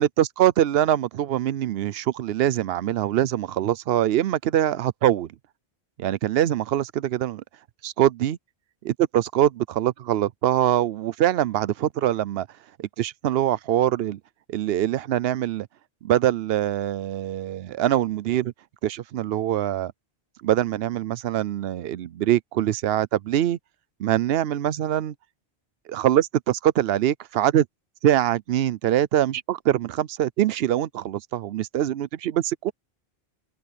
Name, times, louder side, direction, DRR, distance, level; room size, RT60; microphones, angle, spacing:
voice 1, 0.0-5.3 6.0-7.4 7.8-8.4 8.8-12.5 12.8-14.2 14.5-15.7 16.0-18.5 18.8-19.9 20.4-23.6 24.0-25.1 25.9-27.7 28.0-32.7, right 12 dB, 75° right, 0.8 m, -23 dB
omnidirectional pair, 1.1 m